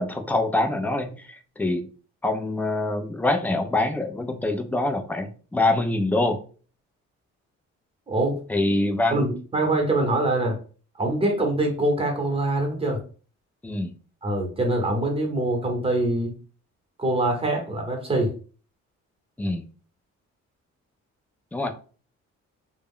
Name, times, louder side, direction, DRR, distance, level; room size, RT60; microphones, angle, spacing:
voice 1, 0.0-1.9 2.2-6.4 8.5-9.2 13.6-13.9 19.4-19.6 21.5-21.7, left 2 dB, 5° left, 6 dB, 0.4 m, -25 dB
voice 2, 8.1-8.4 9.1-10.6 10.9-13.0 14.2-16.4 17.0-18.3, right 2 dB, 20° right, 2 dB, 0.9 m, -24 dB
2.2 x 2.0 x 3.6 m, 0.39 s
cardioid pair, 90°, 30 cm